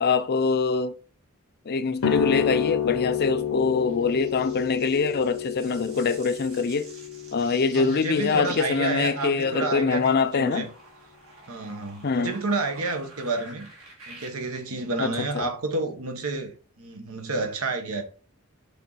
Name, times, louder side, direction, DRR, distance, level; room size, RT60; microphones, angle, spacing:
voice 1, 0.0-0.9 1.7-6.9 7.3-10.7 12.0-12.3 15.0-15.5, left 5 dB, 45° left, 0.5 m, -24 dB
sound 1, 2.0-9.2, left 8 dB, 75° left, 0.7 m, -30 dB
sound 2, 3.7-14.3, right 2 dB, 70° right, 2.3 m, -48 dB
voice 2, 7.7-10.7 11.5-13.7 14.1-16.5 16.8-18.0, right 3 dB, 85° right, 1.3 m, -30 dB
6.7 x 3.7 x 4.1 m
head